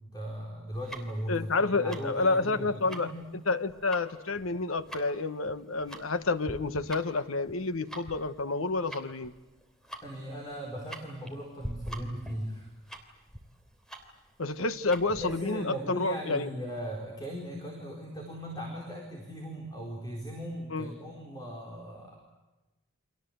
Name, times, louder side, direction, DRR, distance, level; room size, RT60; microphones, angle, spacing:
voice 1, 0.1-3.2 10.0-12.7 15.1-22.2, equal, 20° left, 0 dB, 4.3 m, -38 dB
Tick-tock, 0.7-15.3, right 1 dB, 5° left, 3.2 m, -45 dB
voice 2, 1.3-3.1 3.5-9.3 14.4-16.5 20.7-20.9, left 3 dB, 70° left, 11 dB, 1.2 m, -29 dB
30.0 x 25.0 x 8.0 m, 1.1 s
head